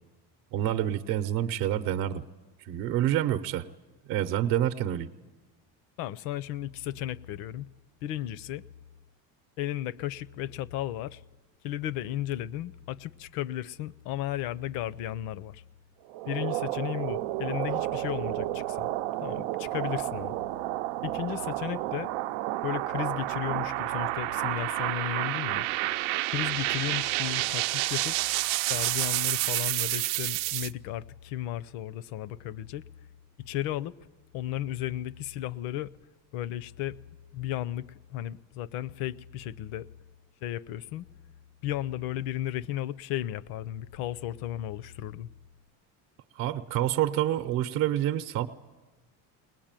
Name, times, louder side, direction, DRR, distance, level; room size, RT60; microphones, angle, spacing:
voice 1, 0.5-2.2 2.6-3.7 4.1-5.1 46.3-48.5, right 12 dB, 55° right, 0.8 m, -27 dB
voice 2, 6.0-7.7 8.0-8.6 9.6-11.2 11.6-15.6 16.3-18.9 19.2-20.4 21.0-22.1 22.6-25.7 26.3-28.2 28.7-32.8 33.4-34.0 34.3-35.9 36.3-37.0 37.3-39.9 40.4-41.1 41.6-45.3, left 13 dB, 60° left, 0.6 m, -34 dB
sound 1, 16.1-30.7, right 17 dB, 85° right, 0.7 m, -30 dB
21.5 x 20.5 x 9.0 m
cardioid pair, 170°, 40 cm